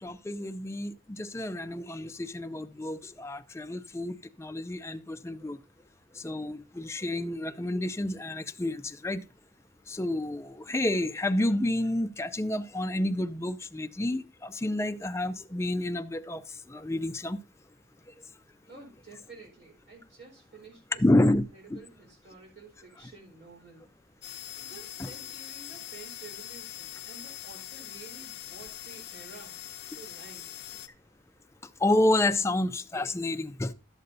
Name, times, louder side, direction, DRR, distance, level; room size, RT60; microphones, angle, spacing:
voice 1, 0.0-5.6 6.2-9.2 9.9-16.4 16.7-17.4 21.0-21.4 21.7-21.8 25.0-25.1 31.8-33.7, left 1 dB, 15° left, 0.4 m, -29 dB
voice 2, 18.7-23.8 24.6-29.6 29.9-30.5, right 3 dB, 65° right, 4.5 m, -51 dB
sound 1, 24.2-30.9, left 12 dB, 55° left, 0.6 m, -43 dB
12.5 x 7.6 x 2.7 m
head